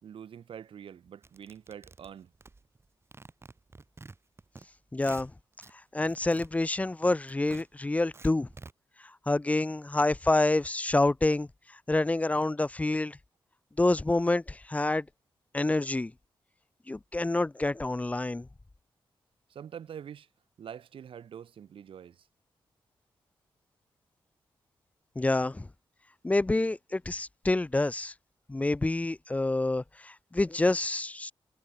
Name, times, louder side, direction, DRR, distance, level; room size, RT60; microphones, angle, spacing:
voice 1, 0.0-2.3 19.5-20.3 20.6-22.2, right 8 dB, 80° right, 2.1 m, -45 dB
sound 1, 1.2-2.9 3.1-4.7 4.9-5.7 6.0-8.7, right 3 dB, 30° right, 4.2 m, -50 dB
voice 2, 4.9-5.3 5.9-8.5 9.3-11.5 11.9-13.2 13.8-15.0 15.5-16.1 16.9-18.5 25.2-25.7 26.2-28.1 28.5-31.3, left 2 dB, 15° left, 0.7 m, -27 dB
wide cardioid pair, 115°, 9 cm